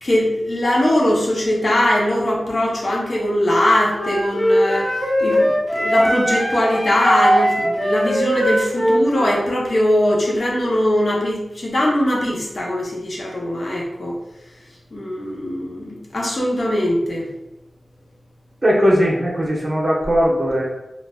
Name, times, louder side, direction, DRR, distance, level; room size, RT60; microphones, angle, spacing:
voice 1, 0.0-4.9 5.2-14.2 14.9-17.2, left 1 dB, 55° left, -2 dB, 0.7 m, -20 dB
Wind instrument woodwind instrument, 3.9-9.4, equal, 10° left, 1.3 m, -20 dB
voice 2, 18.6-20.7, equal, 35° right, -4 dB, 1.0 m, -18 dB
4.1 x 2.4 x 2.3 m, 0.96 s
wide cardioid pair, 65°, 0 cm